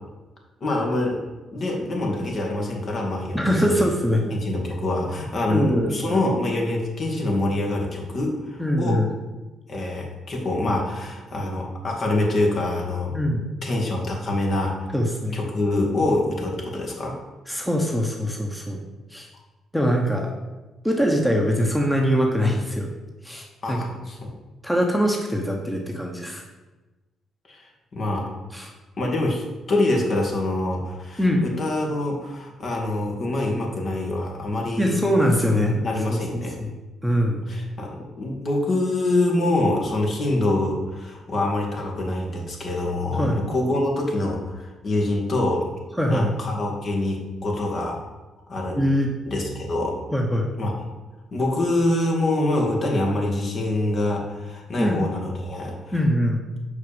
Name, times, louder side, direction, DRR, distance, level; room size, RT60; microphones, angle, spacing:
voice 1, 0.6-1.2 1.5-3.7 4.3-9.0 9.7-13.2 13.6-14.9 15.3-17.1 23.6-24.3 27.5-28.3 29.0-35.0 35.5-36.5 37.5-45.7 46.1-48.0 48.5-48.8 49.2-50.0 50.6-50.7 51.3-56.0, left 2 dB, 50° left, 0 dB, 2.2 m, -25 dB
voice 2, 3.3-4.3 5.5-6.2 8.6-9.1 13.1-13.5 14.9-15.4 17.5-18.8 19.1-19.3 19.7-20.3 20.8-22.9 23.2-24.0 24.6-26.4 28.5-28.7 31.2-31.4 34.8-35.8 36.1-36.7 37.0-37.4 43.2-43.4 46.0-46.3 48.7-49.1 50.1-50.5 54.8-55.0 55.9-56.4, equal, 5° left, 0 dB, 1.1 m, -23 dB
6.4 x 5.2 x 7.0 m, 1.2 s
cardioid pair, 90°, 0 cm